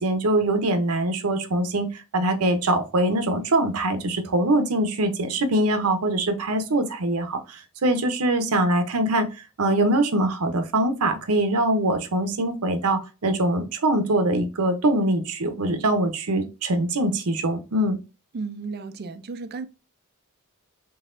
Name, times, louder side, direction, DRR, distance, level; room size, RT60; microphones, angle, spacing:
voice 1, 0.0-9.3 9.6-18.0, right 1 dB, 80° right, 0.8 m, -23 dB
voice 2, 18.3-19.7, right 4 dB, 45° right, 0.4 m, -33 dB
3.9 x 3.5 x 2.5 m
head